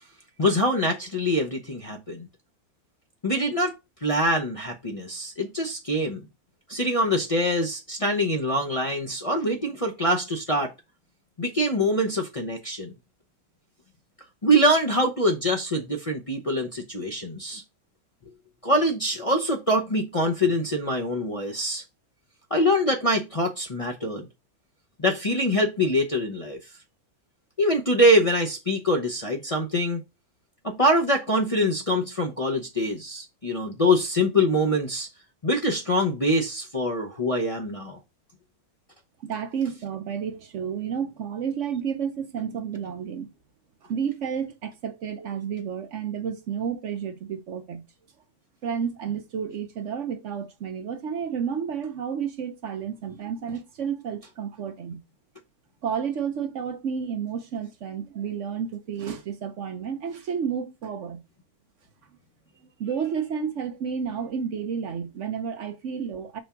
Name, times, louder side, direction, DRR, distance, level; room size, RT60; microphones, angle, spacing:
voice 1, 0.4-2.3 3.2-3.8 4.0-6.2 6.7-10.7 11.4-12.9 14.4-17.6 18.6-21.8 22.5-24.3 25.0-26.6 27.6-30.0 30.6-35.1 35.4-38.0, equal, 30° left, 0.7 m, -24 dB
voice 2, 39.2-43.3 43.8-47.9 48.6-55.0 55.8-61.2 62.8-66.4, right 7 dB, 60° right, 1.0 m, -31 dB
5.2 x 3.5 x 5.7 m
omnidirectional pair, 1.6 m